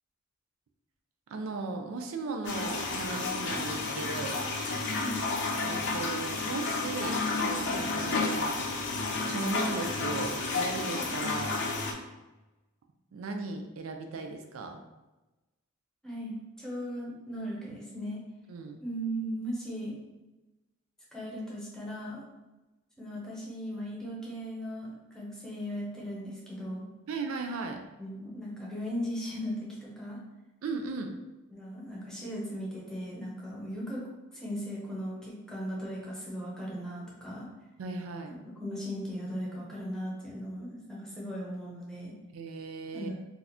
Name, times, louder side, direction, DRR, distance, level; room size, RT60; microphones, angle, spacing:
voice 1, 1.3-4.4 5.6-8.6 9.3-11.6 13.1-14.8 18.5-18.8 27.1-27.8 30.6-31.2 37.8-38.4 42.3-43.1, right 3 dB, 70° right, 4 dB, 0.4 m, -37 dB
sound 1, 2.4-11.9, left 3 dB, 55° left, 0.5 m, -31 dB
voice 2, 4.9-5.2 16.0-18.2 18.8-20.0 21.1-22.2 23.0-26.9 28.0-30.2 31.5-34.0 34.3-37.5 38.6-42.1 42.9-43.2, equal, 5° left, -5 dB, 0.8 m, -37 dB
2.8 x 2.4 x 4.1 m, 1.1 s
head